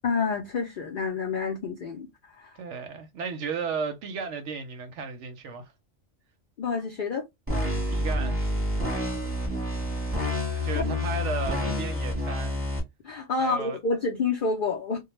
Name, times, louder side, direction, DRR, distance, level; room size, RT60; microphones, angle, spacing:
voice 1, 0.0-2.1 2.4-2.5 6.6-7.3 10.5-10.8 13.0-15.0, left 4 dB, 65° left, 0.5 m, -28 dB
voice 2, 2.6-5.7 7.9-8.4 10.6-12.6 13.4-13.8, right 5 dB, 70° right, 0.8 m, -34 dB
sound 1, 7.5-12.8, left 1 dB, 10° right, 0.8 m, -28 dB
2.2 x 2.1 x 3.0 m
omnidirectional pair, 1.4 m